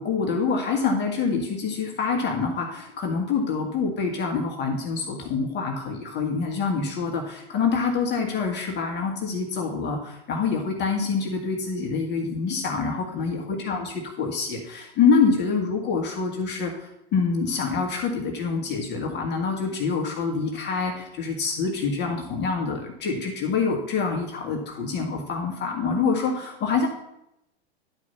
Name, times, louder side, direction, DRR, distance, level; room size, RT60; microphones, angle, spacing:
voice 1, 0.0-26.9, left 5 dB, 30° left, 1 dB, 1.8 m, -26 dB
10.5 x 4.8 x 5.7 m, 0.83 s
hypercardioid pair, 105°, 32 cm